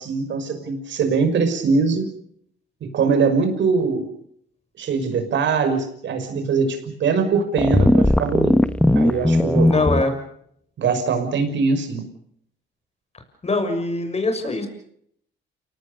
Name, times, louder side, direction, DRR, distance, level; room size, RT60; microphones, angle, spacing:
voice 1, 0.0-2.1 2.8-4.1 4.8-8.6 8.9-9.7 10.8-12.1, right 5 dB, 70° right, 7 dB, 6.0 m, -22 dB
sound 1, 7.6-10.0, left 1 dB, 5° left, 1.2 m, -17 dB
voice 2, 9.6-10.1 13.4-14.7, left 2 dB, 30° left, 6 dB, 6.6 m, -22 dB
29.5 x 18.5 x 6.9 m, 0.69 s
cardioid pair, 90°, 20 cm